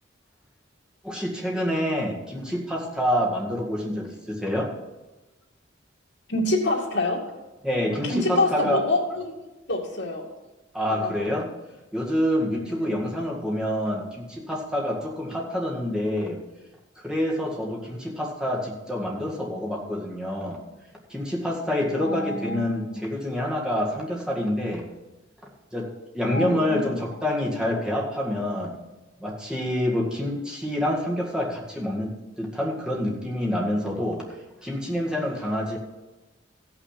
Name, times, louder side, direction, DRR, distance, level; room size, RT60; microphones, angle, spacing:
voice 1, 1.0-4.7 7.6-8.8 10.7-11.5 11.9-16.4 17.0-20.6 21.1-24.9 25.7-28.8 29.2-34.3 34.6-35.8, left 1 dB, 5° right, -3 dB, 2.0 m, -27 dB
voice 2, 6.3-7.2 8.0-9.0 9.2-9.3 9.7-10.3 10.9-11.3 12.8-13.0 22.0-23.0 26.3-26.9, left 2 dB, 65° left, -1 dB, 2.3 m, -26 dB
15.0 x 5.9 x 5.9 m, 1.1 s
head